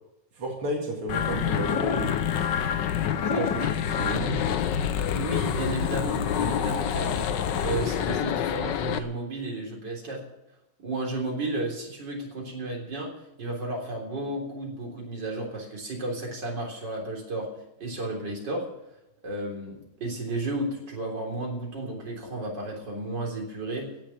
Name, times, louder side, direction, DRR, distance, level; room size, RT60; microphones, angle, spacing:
voice 1, 0.3-2.2 3.2-3.7 4.0-4.6, right 2 dB, 85° right, -1 dB, 3.0 m, -32 dB
sound 1, 1.1-9.0, left 8 dB, 65° left, 1.4 m, -27 dB
voice 2, 3.2-3.7 5.1-7.3 7.6-10.2 10.8-13.1 13.4-17.5 17.8-18.7 19.2-23.9, right 2 dB, 55° right, -1 dB, 4.3 m, -33 dB
16.5 x 7.5 x 9.5 m, 0.87 s
omnidirectional pair, 2.3 m